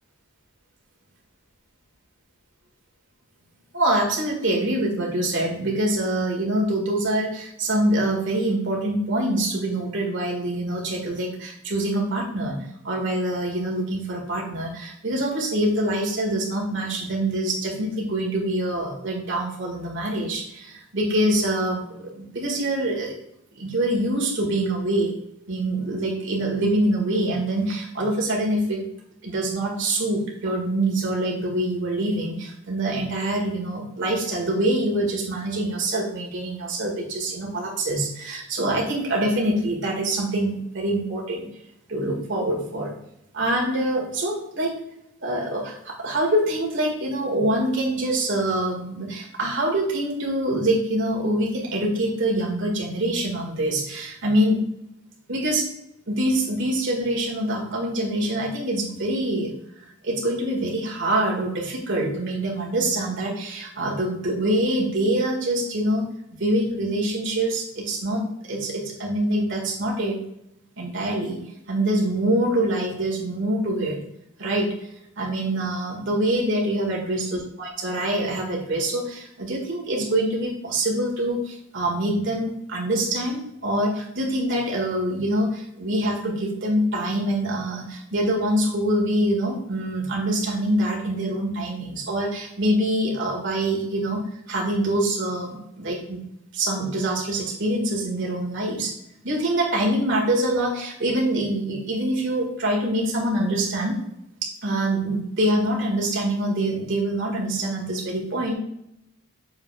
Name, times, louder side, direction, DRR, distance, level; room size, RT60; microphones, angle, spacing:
voice 1, 3.7-12.6 12.8-23.1 23.6-25.1 25.5-28.8 29.2-41.5 41.9-42.9 43.3-44.7 45.2-54.6 55.3-55.6 56.1-59.5 60.0-66.1 66.4-70.2 70.8-71.4 71.7-74.0 74.4-74.7 75.2-94.2 94.5-96.2 96.5-98.9 99.2-104.0 104.4-108.5, right 1 dB, 65° right, -1 dB, 2.1 m, -25 dB
7.2 x 5.5 x 2.4 m, 0.77 s
head